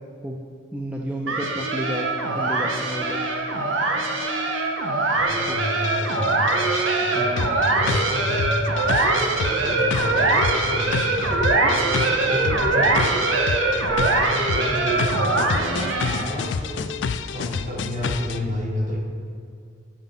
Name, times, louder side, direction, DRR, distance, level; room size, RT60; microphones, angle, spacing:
voice 1, 0.7-2.1 2.3-3.2 5.5-5.6 7.0-7.6, equal, 5° right, -1 dB, 0.4 m, -31 dB
sound 1, 1.3-16.4, right 2 dB, 90° right, 0.9 m, -22 dB
voice 2, 5.1-6.4 7.0-8.5 8.9-13.0 13.6-16.9 17.3-19.0, left 1 dB, 40° right, -1 dB, 1.4 m, -31 dB
sound 2, 5.8-18.4, left 5 dB, 65° left, 0.3 m, -29 dB
7.4 x 5.7 x 5.5 m, 2.3 s
head